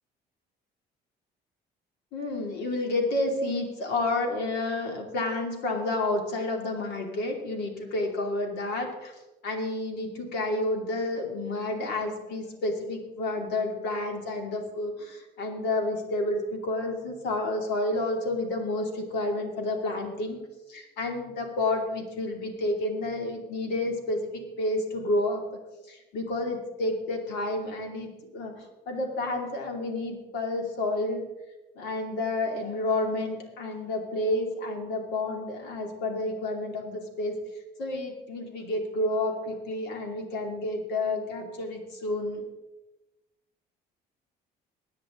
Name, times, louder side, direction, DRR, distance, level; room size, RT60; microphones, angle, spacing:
voice 1, 2.1-20.4 20.7-25.4 25.8-31.2 31.7-42.4, left 2 dB, 85° left, 3 dB, 2.7 m, -30 dB
23.5 x 9.5 x 3.8 m, 1.0 s
cardioid pair, 110°, 17 cm